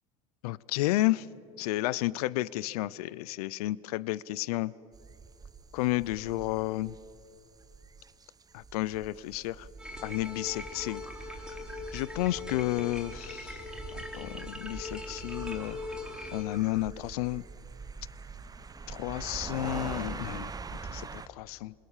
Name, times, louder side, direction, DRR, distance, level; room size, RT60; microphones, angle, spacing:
voice 1, 0.4-1.3 1.6-4.7 5.7-6.9 8.5-9.7 10.0-11.0 11.9-13.6 13.9-15.8 16.3-17.4 18.9-20.5 20.8-21.7, left 17 dB, 80° left, 21 dB, 0.6 m, -31 dB
sound 1, 4.9-21.3, right 4 dB, 20° right, 0.9 m, -44 dB
sound 2, 9.8-16.4, left 2 dB, 5° right, 4.3 m, -41 dB
27.0 x 22.0 x 7.4 m, 2.5 s
supercardioid pair, 95°, 19 cm